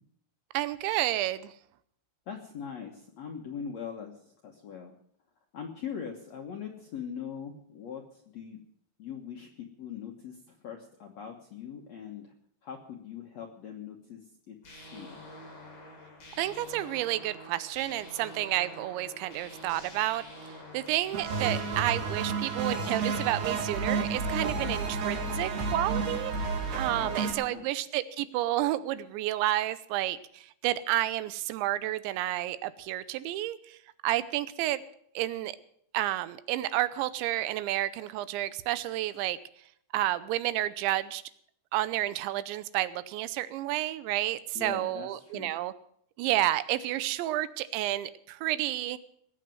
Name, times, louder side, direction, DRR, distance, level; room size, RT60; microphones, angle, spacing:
voice 1, 0.5-1.5 16.4-34.8 35.2-35.5 35.9-39.4 39.9-41.2 41.7-45.7 46.2-49.0, right 15 dB, 80° right, 15 dB, 3.0 m, -30 dB
voice 2, 2.3-4.9 5.5-8.6 9.0-12.3 12.6-15.2 27.0-27.7 44.5-45.5, left 7 dB, 85° left, 1 dB, 1.5 m, -42 dB
sound 1, 14.6-23.4, left 1 dB, 50° left, 9.1 m, -47 dB
sound 2, 21.1-27.3, right 4 dB, 60° right, 4.6 m, -31 dB
20.0 x 8.3 x 7.7 m, 0.68 s
omnidirectional pair, 5.3 m